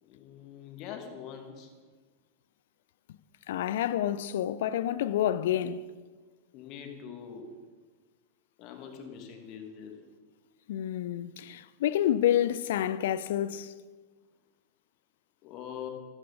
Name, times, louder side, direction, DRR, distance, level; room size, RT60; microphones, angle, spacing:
voice 1, 0.0-1.7 6.5-7.5 8.6-9.9 15.4-15.9, left 8 dB, 40° left, 2.5 m, -43 dB
voice 2, 3.5-5.8 10.7-13.7, left 11 dB, 55° left, 0.6 m, -28 dB
14.5 x 13.5 x 5.3 m
figure-of-eight pair, 90°, 0 cm